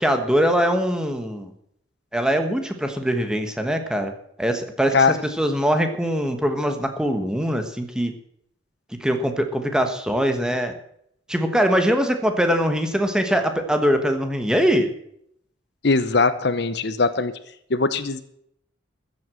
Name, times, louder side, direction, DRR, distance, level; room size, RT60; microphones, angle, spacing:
voice 1, 0.0-1.5 2.1-4.1 4.4-8.1 9.0-10.7 11.3-14.9, equal, 5° right, 6 dB, 1.2 m, -22 dB
voice 2, 15.8-17.3 17.7-18.2, left 4 dB, 55° left, 13 dB, 0.8 m, -20 dB
14.0 x 8.0 x 7.6 m, 0.72 s
head